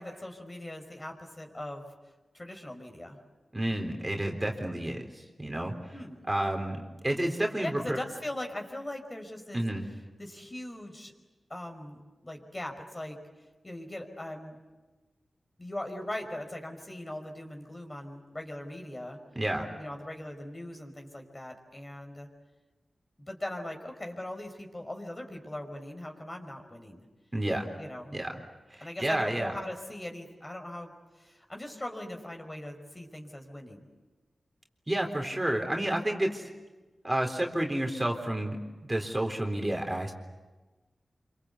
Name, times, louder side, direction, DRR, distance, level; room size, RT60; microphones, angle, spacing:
voice 1, 0.0-1.9 2.3-3.2 5.9-6.2 7.6-9.6 10.2-11.1 11.5-13.2 13.6-14.6 15.6-19.2 19.8-22.3 23.3-27.1 27.7-28.1 28.8-30.9 31.2-33.9, left 1 dB, 25° left, 3 dB, 5.2 m, -40 dB
voice 2, 3.5-5.7 6.3-8.0 9.5-9.8 19.4-19.7 27.3-27.7 28.1-28.3 28.7-29.5 34.9-36.5 37.0-38.6 38.8-40.1, right 1 dB, 20° right, 2 dB, 3.8 m, -30 dB
27.0 x 25.5 x 8.3 m, 1.2 s
cardioid pair, 55°, 0 cm